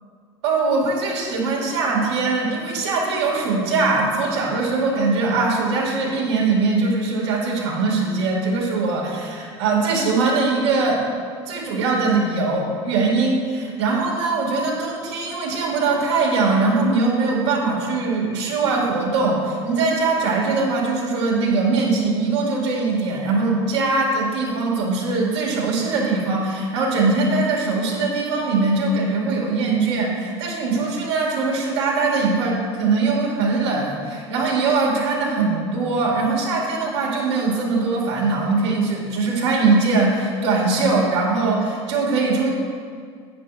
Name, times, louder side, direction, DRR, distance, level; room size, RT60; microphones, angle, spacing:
voice 1, 0.4-11.0 11.5-42.5, right 3 dB, 85° right, -4 dB, 2.3 m, -21 dB
10.0 x 8.9 x 2.6 m, 2.1 s
hypercardioid pair, 90°, 14 cm